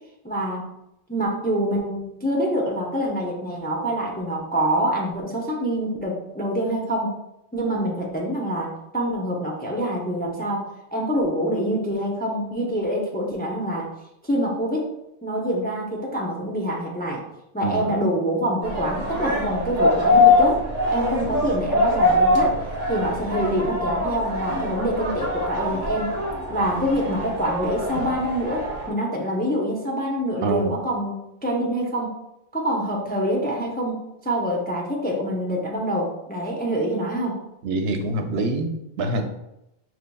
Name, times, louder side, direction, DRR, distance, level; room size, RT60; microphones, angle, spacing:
voice 1, 0.2-0.7 1.1-7.2 7.5-13.9 14.2-14.9 15.2-17.2 17.5-20.6 20.9-22.5 22.9-26.1 26.5-32.1 32.5-37.4, equal, 15° left, -2 dB, 0.4 m, -26 dB
voice 2, 17.6-17.9 30.4-30.7 37.6-39.2, right 2 dB, 75° right, 5 dB, 0.8 m, -25 dB
sound 1, 18.6-28.9, left 2 dB, 40° right, 1.0 m, -23 dB
5.1 x 3.0 x 2.2 m, 0.87 s
omnidirectional pair, 1.1 m